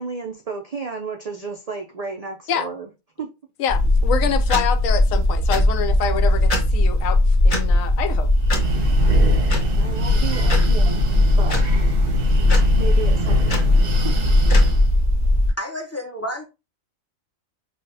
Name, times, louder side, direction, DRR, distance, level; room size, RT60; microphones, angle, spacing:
voice 1, 0.0-2.9 3.2-3.3 9.8-11.0 11.4-11.8 12.8-14.2, right 5 dB, 90° right, 0.3 m, -32 dB
voice 2, 3.6-8.3, left 8 dB, 75° left, 1.0 m, -26 dB
sound 1, 3.7-15.5, left 1 dB, 55° left, 1.5 m, -19 dB
Breathing, 8.3-15.0, left 1 dB, 50° right, 0.8 m, -24 dB
voice 3, 15.6-16.4, equal, 15° left, 0.5 m, -30 dB
5.5 x 2.4 x 2.6 m
omnidirectional pair, 1.4 m